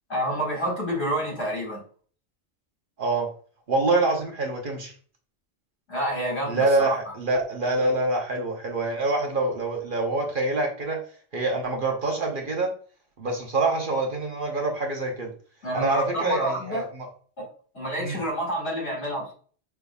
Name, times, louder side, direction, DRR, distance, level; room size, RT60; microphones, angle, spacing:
voice 1, 0.1-1.8 5.9-7.1 15.6-16.9 17.4-17.5 17.7-19.3, right 1 dB, 65° left, -3 dB, 2.2 m, -28 dB
voice 2, 3.0-3.3 3.7-4.9 6.5-11.0 11.3-12.7 13.2-15.3 15.7-17.1 18.0-18.2, right 2 dB, 50° right, 1 dB, 0.9 m, -25 dB
5.2 x 3.4 x 2.3 m, 0.43 s
omnidirectional pair, 1.2 m